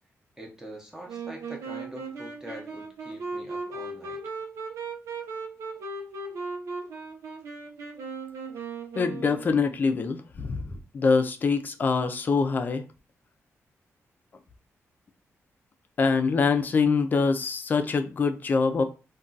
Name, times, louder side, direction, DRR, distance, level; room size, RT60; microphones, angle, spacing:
voice 1, 0.4-4.2, equal, 10° right, 0.6 m, -44 dB
Wind instrument woodwind instrument, 1.1-9.8, right 3 dB, 70° right, 0.8 m, -37 dB
voice 2, 9.0-12.8 16.0-18.8, left 4 dB, 35° left, 0.4 m, -24 dB
2.3 x 2.3 x 3.8 m
wide cardioid pair, 165°, 5 cm